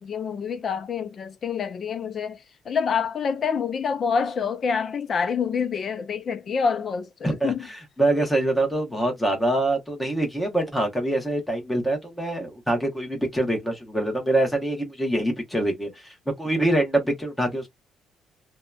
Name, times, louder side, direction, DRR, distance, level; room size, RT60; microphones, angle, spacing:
voice 1, 0.0-7.7, left 6 dB, 40° left, 0.4 m, -27 dB
voice 2, 7.2-17.7, right 1 dB, 5° left, 1.0 m, -25 dB
2.8 x 2.1 x 2.3 m
cardioid pair, 130°, 0 cm